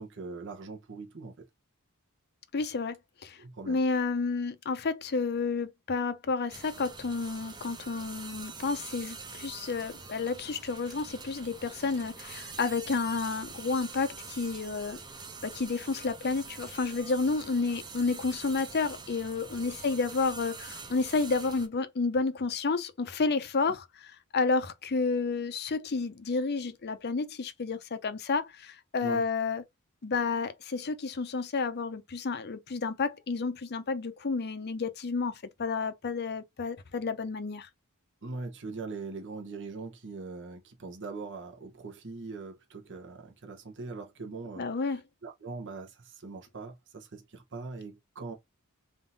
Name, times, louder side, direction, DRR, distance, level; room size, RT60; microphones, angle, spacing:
voice 1, 0.0-1.3 3.4-3.8 29.0-29.2 38.2-48.3, right 3 dB, 60° right, 1.0 m, -41 dB
voice 2, 2.5-2.9 3.2-3.4 3.7-15.0 15.4-23.8 24.3-29.6 30.0-37.7 44.6-45.0, left 4 dB, 50° left, 0.7 m, -30 dB
sound 1, 6.5-21.7, right 4 dB, 20° right, 0.7 m, -45 dB
3.7 x 2.7 x 4.0 m
head